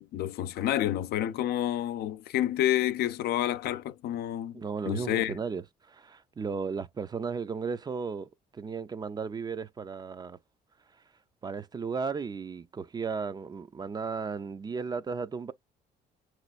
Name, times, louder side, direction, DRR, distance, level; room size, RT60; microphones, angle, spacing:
voice 1, 0.0-4.6 4.9-5.3, left 12 dB, 70° left, 0.5 m, -29 dB
voice 2, 4.5-10.4 11.4-15.5, right 5 dB, 25° right, 0.4 m, -35 dB
5.9 x 3.1 x 2.4 m
cardioid pair, 110°, 17 cm